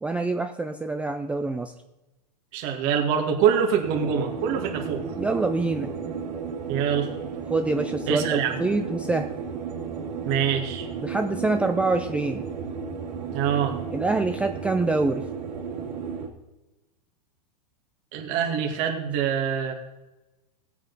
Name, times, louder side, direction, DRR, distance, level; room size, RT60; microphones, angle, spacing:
voice 1, 0.0-1.7 5.2-5.9 7.5-9.3 11.0-12.4 13.9-15.3, right 3 dB, 5° right, 7 dB, 0.4 m, -26 dB
voice 2, 2.5-5.0 6.7-7.1 8.1-8.6 10.3-10.9 13.3-13.8 18.1-19.7, right 8 dB, 45° right, 2 dB, 2.0 m, -24 dB
sound 1, 3.8-16.3, right 6 dB, 85° right, 2.7 m, -33 dB
17.5 x 8.3 x 4.0 m, 1.1 s
hypercardioid pair, 125°, 21 cm